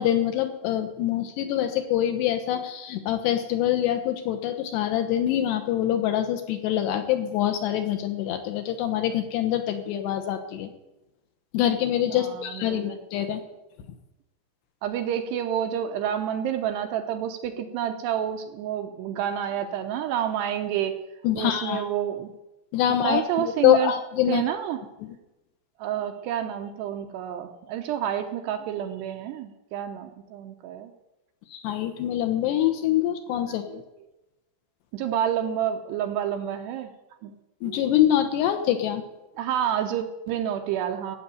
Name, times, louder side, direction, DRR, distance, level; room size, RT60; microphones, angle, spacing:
voice 1, 0.0-10.7 11.5-13.4 21.2-21.8 22.7-23.2 23.6-24.4 31.5-33.8 37.6-39.0, left 11 dB, 75° left, 7 dB, 2.9 m, -25 dB
voice 2, 12.1-13.0 14.8-20.9 21.4-22.3 23.0-23.9 24.3-24.8 25.8-30.9 33.5-33.8 34.9-36.9 37.2-37.3 37.6-37.9 39.4-41.2, right 10 dB, 75° right, 6 dB, 2.7 m, -29 dB
15.5 x 7.7 x 9.2 m, 0.98 s
omnidirectional pair, 5.4 m